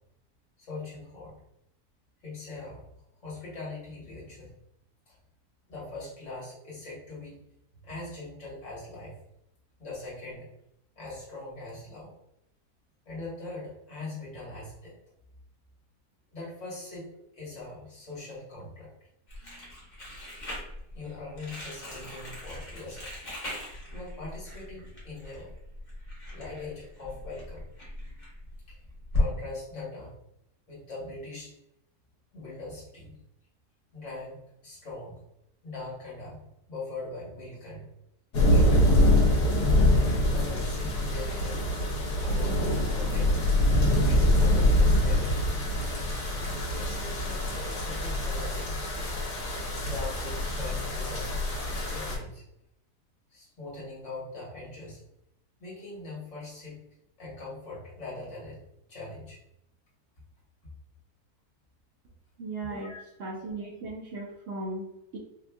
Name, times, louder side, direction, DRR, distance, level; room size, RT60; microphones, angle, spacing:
voice 1, 0.6-1.4 2.2-2.8 3.2-4.5 5.1-5.2 5.7-7.4 7.8-9.2 9.8-10.5 10.9-12.1 13.0-14.9 16.3-17.1 17.3-18.9 20.9-23.1 23.9-25.5 26.3-27.6 28.7-28.8 29.1-30.2 30.7-31.5 32.3-33.2 33.9-35.2 35.6-36.4 36.7-37.9 38.5-38.9 40.1-41.7 42.2-43.6 44.0-45.6 46.7-48.8 49.8-51.4 51.9-52.4 53.3-55.0 55.6-56.8 57.2-58.6 58.9-59.4 62.7-63.0, left 2 dB, 50° left, -6 dB, 1.7 m, -41 dB
Crumpling crinkling, 19.3-29.3, left 2 dB, 35° left, 0.9 m, -37 dB
sound 1, 38.3-52.2, left 1 dB, 90° left, 1.4 m, -25 dB
voice 2, 62.4-62.9 63.2-65.2, right 2 dB, 70° right, -1 dB, 0.6 m, -37 dB
4.2 x 2.5 x 2.3 m, 0.82 s
omnidirectional pair, 1.7 m